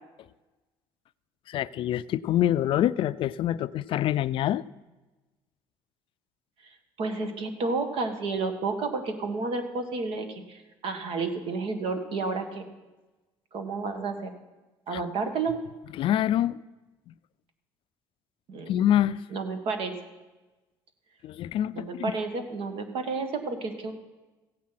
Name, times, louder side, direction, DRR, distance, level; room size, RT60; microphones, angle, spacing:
voice 1, 1.5-4.6 14.9-15.0 15.9-16.6 18.7-19.2 21.2-22.1, left 12 dB, 60° left, 17 dB, 0.4 m, -26 dB
voice 2, 7.0-12.7 13.5-14.3 14.9-15.6 18.5-18.7 19.3-20.0 21.7-23.9, right 4 dB, 65° right, 7 dB, 1.7 m, -31 dB
15.5 x 8.7 x 5.8 m, 1.1 s
supercardioid pair, 85°, 10 cm